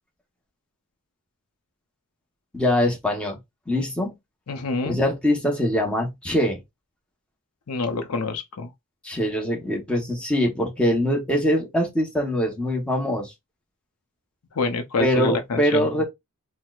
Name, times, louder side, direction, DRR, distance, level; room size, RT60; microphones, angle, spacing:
voice 1, 2.5-3.4 3.7-4.1 4.8-6.6 9.0-13.3 15.0-16.0, equal, 5° left, 0.9 m, -23 dB
voice 2, 4.5-5.0 7.7-8.7 14.5-16.0, left 3 dB, 90° left, 0.6 m, -27 dB
4.3 x 2.1 x 2.3 m
head